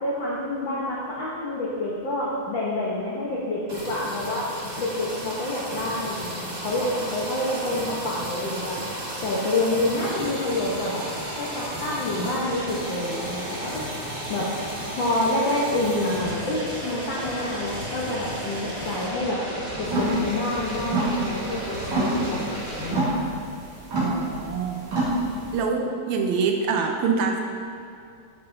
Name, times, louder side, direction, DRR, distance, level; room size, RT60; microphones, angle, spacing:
voice 1, 0.0-8.8 9.2-11.0 11.3-13.8 14.3-14.5 14.9-19.4 19.8-22.5 22.8-23.2, left 1 dB, 75° left, -6 dB, 1.1 m, -28 dB
sound 1, 3.7-22.9, right 1 dB, 35° right, 1.3 m, -34 dB
sound 2, 19.8-25.6, right 2 dB, 65° right, 3.3 m, -27 dB
voice 2, 24.0-24.8 25.5-27.4, right 5 dB, 80° right, 3 dB, 1.9 m, -25 dB
13.0 x 5.8 x 2.6 m, 2.5 s
omnidirectional pair, 3.4 m